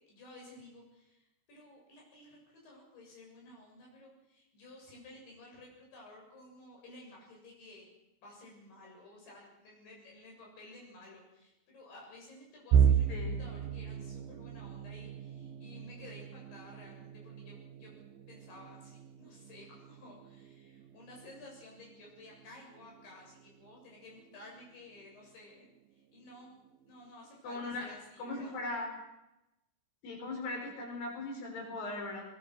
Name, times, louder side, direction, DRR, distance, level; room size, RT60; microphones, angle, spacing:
voice 1, 0.0-7.9 8.2-17.9 18.3-26.6 26.9-28.6, left 2 dB, 90° left, -2 dB, 9.1 m, -54 dB
sound 1, 12.7-24.6 25.0-25.2 25.6-25.8 26.7-27.1, right 8 dB, 75° right, 2.7 m, -35 dB
voice 2, 27.4-27.8 28.2-28.9 30.0-32.2, left 2 dB, 65° left, 1 dB, 7.1 m, -39 dB
22.5 x 20.5 x 6.5 m, 0.94 s
omnidirectional pair, 4.5 m